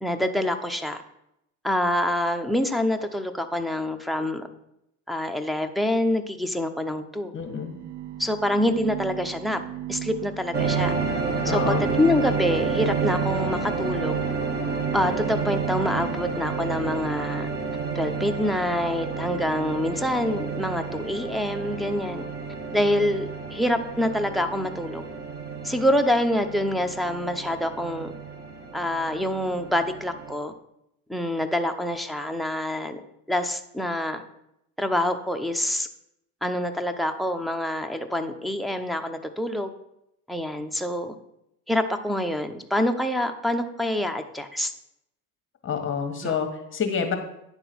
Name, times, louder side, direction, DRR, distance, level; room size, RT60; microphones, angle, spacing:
voice 1, 0.0-1.0 1.6-4.4 5.1-7.3 8.2-9.6 9.9-10.9 11.4-14.2 14.9-17.5 17.9-22.3 22.7-25.0 25.6-28.1 28.7-30.5 31.1-33.0 33.3-34.2 34.8-35.9 36.4-39.7 40.3-41.2 41.7-44.7 46.2-46.4, left 1 dB, ahead, 9 dB, 0.5 m, -26 dB
voice 2, 7.3-7.8 11.4-11.9 45.6-47.1, left 6 dB, 30° left, 5 dB, 1.4 m, -28 dB
sound 1, 7.5-17.1, right 12 dB, 80° right, 0.8 m, -37 dB
sound 2, 10.5-30.3, right 5 dB, 25° right, 1.1 m, -30 dB
10.0 x 3.9 x 6.0 m, 0.81 s
supercardioid pair, 110°, 40 cm